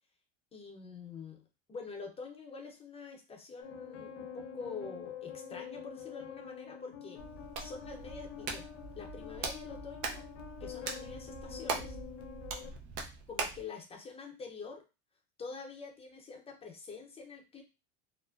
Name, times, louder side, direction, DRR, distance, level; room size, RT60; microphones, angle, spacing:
voice 1, 0.5-7.2 7.6-8.6 9.0-10.3 10.6-12.0 13.3-14.8 15.4-17.6, left 4 dB, 15° left, 1 dB, 0.6 m, -46 dB
sound 1, 3.6-12.7, left 8 dB, 80° left, 0.5 m, -46 dB
Hands, 7.2-13.7, right 4 dB, 75° right, 0.7 m, -41 dB
2.5 x 2.1 x 2.3 m, 0.29 s
supercardioid pair, 105°, 35 cm